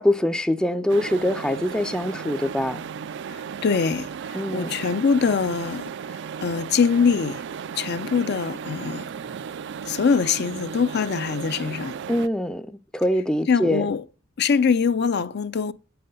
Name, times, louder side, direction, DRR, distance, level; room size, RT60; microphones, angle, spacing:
voice 1, 0.0-2.8 4.3-4.8 12.1-13.9, left 1 dB, 5° left, 0.4 m, -24 dB
sound 1, 0.9-12.3, right 7 dB, 60° right, 0.4 m, -35 dB
voice 2, 3.3-7.4 7.8-9.1 9.8-12.0 13.5-14.0 14.4-15.7, left 5 dB, 55° left, 0.5 m, -23 dB
8.6 x 7.8 x 5.3 m
head